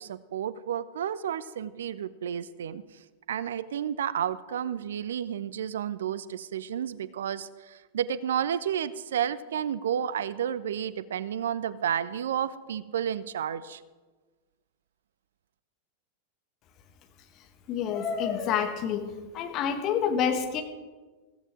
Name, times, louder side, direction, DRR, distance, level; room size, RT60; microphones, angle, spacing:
voice 1, 0.0-2.8 3.3-13.8, right 9 dB, 60° right, 17 dB, 0.5 m, -31 dB
voice 2, 17.7-19.1 19.3-20.6, left 7 dB, 35° left, 6 dB, 1.5 m, -28 dB
15.5 x 14.5 x 3.6 m, 1.3 s
figure-of-eight pair, 90°, 0 cm